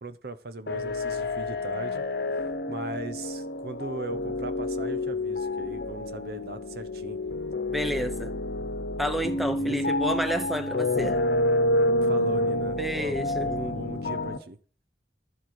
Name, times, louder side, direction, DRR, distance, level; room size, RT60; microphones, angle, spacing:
voice 1, 0.0-2.0 2.7-7.2 9.4-9.9 12.0-14.6, right 2 dB, 60° right, 0.9 m, -38 dB
sound 1, 0.7-14.4, left 1 dB, 65° left, 1.1 m, -28 dB
voice 2, 7.7-8.3 9.0-11.2 12.8-13.5, equal, ahead, 0.8 m, -30 dB
12.0 x 7.4 x 6.2 m
head